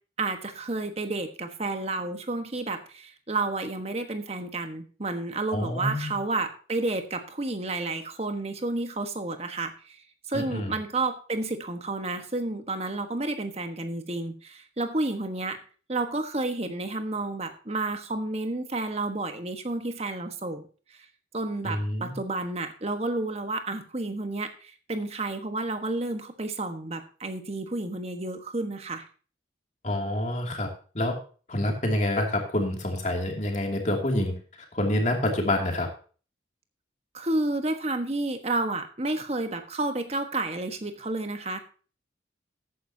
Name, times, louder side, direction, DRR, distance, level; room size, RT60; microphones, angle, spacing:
voice 1, 0.2-10.0 10.3-15.6 15.9-21.0 21.3-29.0 37.1-41.6, right 2 dB, 35° right, 7 dB, 1.3 m, -31 dB
voice 2, 5.5-6.1 10.3-10.7 21.6-22.1 29.8-30.7 30.9-31.2 31.5-34.3 34.7-35.9, left 1 dB, 40° left, 2 dB, 2.6 m, -27 dB
14.0 x 9.7 x 2.8 m, 0.38 s
head